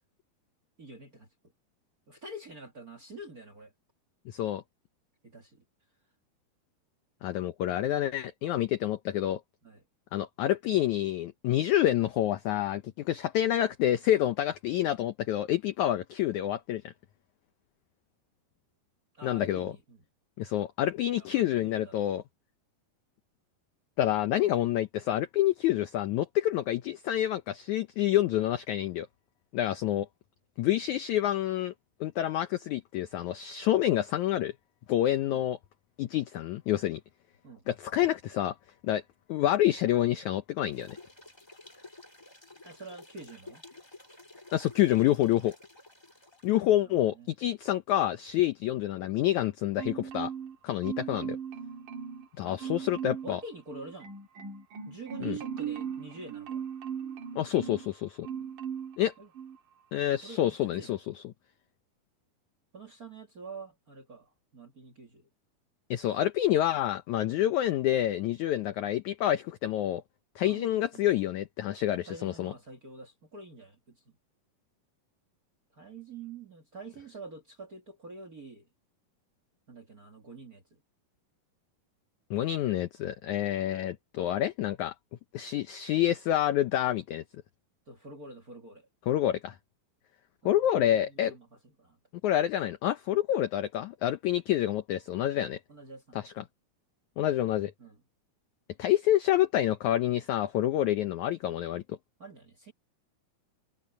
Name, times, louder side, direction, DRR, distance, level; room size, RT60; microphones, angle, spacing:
voice 1, 0.8-1.3 2.1-3.7 5.2-5.7 9.6-9.8 19.1-20.0 21.1-22.1 35.3-35.4 37.4-37.6 42.6-43.6 46.8-47.3 52.4-52.8 53.2-54.1 54.9-56.7 59.2-59.3 60.1-61.0 62.7-65.3 70.4-71.0 72.1-74.0 75.7-78.7 79.7-80.8 87.9-88.9 90.4-92.0 95.7-96.3 97.8-98.0 102.2-102.7, right 2 dB, 30° right, 1.7 m, -47 dB
voice 2, 4.3-4.6 7.2-9.4 10.1-16.9 19.2-19.7 20.4-22.2 24.0-29.1 29.5-30.1 30.6-31.7 32.0-34.5 34.9-35.6 36.0-37.0 37.7-38.5 38.8-39.0 39.3-41.0 44.5-45.5 46.4-50.3 50.6-51.4 52.4-53.4 55.2-55.4 57.3-58.3 59.0-59.1 59.9-61.2 65.9-70.0 70.4-72.5 82.3-84.9 85.3-87.2 89.1-89.5 90.4-91.3 92.2-95.6 96.1-96.4 97.2-97.7 98.8-102.0, left 12 dB, 80° left, 1.7 m, -28 dB
sound 1, 40.7-46.6, left 2 dB, 10° left, 1.3 m, -52 dB
Marimba xylophone, 49.8-50.6 50.8-52.3 52.6-53.3 53.7-57.9 58.2-59.0 59.3-59.6, right 7 dB, 60° right, 3.1 m, -38 dB
omnidirectional pair, 4.4 m